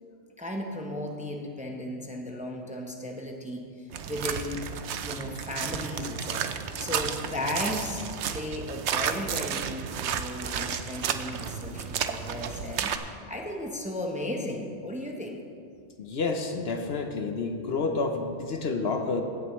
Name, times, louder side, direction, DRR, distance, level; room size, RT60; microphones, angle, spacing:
voice 1, 0.4-3.6 4.0-15.4, left 1 dB, 5° right, 1 dB, 0.8 m, -35 dB
sound 1, 3.9-13.0, right 8 dB, 75° right, 0.9 m, -32 dB
voice 2, 16.0-19.2, left 4 dB, 60° left, 5 dB, 1.0 m, -29 dB
17.0 x 9.3 x 3.1 m, 2.3 s
omnidirectional pair, 1.2 m